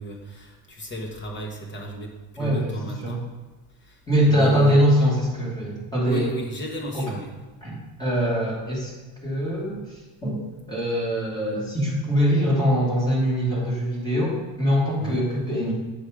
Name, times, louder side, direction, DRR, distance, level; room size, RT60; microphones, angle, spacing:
voice 1, 0.0-2.1 2.4-3.2 4.3-4.8 6.0-7.3 15.0-15.3, right 1 dB, 25° left, 1 dB, 1.4 m, -33 dB
voice 2, 2.4-3.2 4.1-6.3 6.9-7.1 7.6-7.7 8.0-8.9 9.2-10.4 10.7-15.7, equal, 10° left, -6 dB, 2.7 m, -23 dB
9.2 x 5.3 x 5.0 m, 1.2 s
cardioid pair, 180°, 40 cm